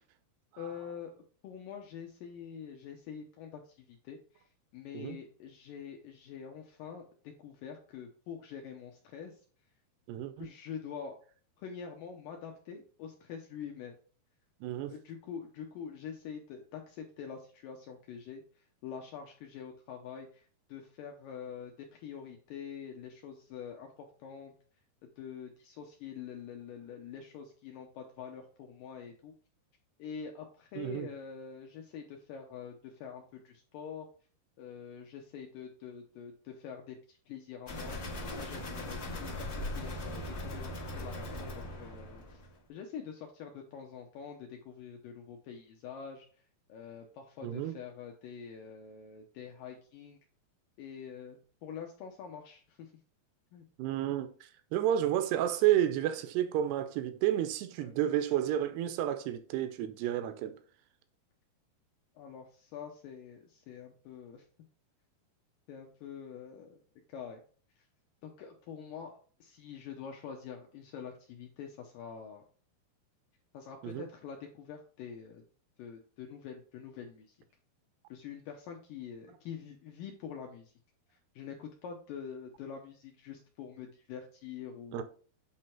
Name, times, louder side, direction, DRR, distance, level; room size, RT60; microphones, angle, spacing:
voice 1, 0.6-3.6 3.9-4.2 4.7-9.3 10.4-11.2 11.6-14.0 14.8-18.4 18.8-23.9 24.2-24.5 25.0-29.3 30.0-34.1 34.6-38.0 38.3-42.4 42.7-46.3 46.7-50.2 50.8-52.9 53.5-53.7 57.8-58.0 62.2-64.4 65.7-66.8 67.1-67.4 68.2-69.1 69.4-72.4 73.5-75.4 75.8-77.3 78.1-80.7 81.4-85.0, left 7 dB, 75° left, 2.1 m, -45 dB
voice 2, 10.1-10.5 14.6-15.0 30.8-31.1 47.4-47.7 53.8-54.3 54.7-60.5 73.8-74.1 84.9-85.0, right 11 dB, 85° right, 2.8 m, -31 dB
sound 1, 37.7-42.6, left 1 dB, 45° left, 1.2 m, -39 dB
8.6 x 3.3 x 4.4 m
omnidirectional pair, 4.7 m